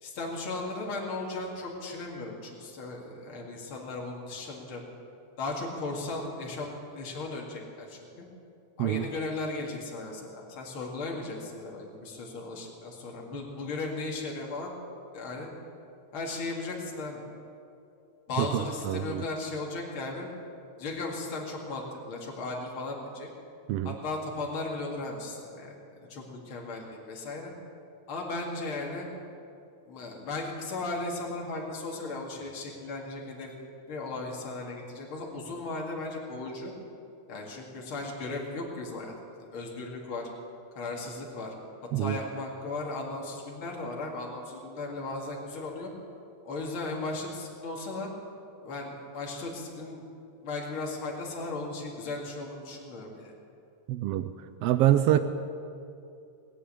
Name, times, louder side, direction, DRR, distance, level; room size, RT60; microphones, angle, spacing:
voice 1, 0.0-4.8 5.4-8.3 8.8-14.7 15.1-15.5 16.1-17.2 18.3-20.3 20.8-23.3 23.8-27.5 28.1-29.1 29.9-33.5 33.9-36.7 37.3-39.2 39.5-40.3 40.8-41.5 42.0-45.9 46.4-48.1 48.6-50.0 50.4-53.3, left 3 dB, 45° left, -1 dB, 2.8 m, -36 dB
voice 2, 18.9-19.2 23.7-24.0 41.9-42.2 53.9-54.3 54.6-55.2, right 13 dB, 85° right, 10 dB, 1.4 m, -25 dB
20.0 x 8.4 x 8.7 m, 2.6 s
omnidirectional pair, 3.3 m